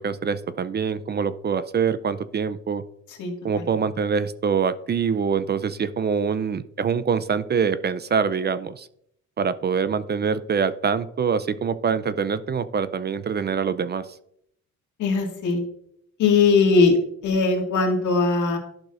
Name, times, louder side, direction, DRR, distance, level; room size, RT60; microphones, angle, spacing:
voice 1, 0.0-2.8 3.4-8.9 9.4-14.1, right 6 dB, 35° right, 14 dB, 0.5 m, -24 dB
voice 2, 3.2-3.7 15.0-15.6 16.2-17.0 17.2-18.6, left 4 dB, 75° left, 1 dB, 2.0 m, -20 dB
11.5 x 6.1 x 2.5 m, 0.71 s
cardioid pair, 90°, 30 cm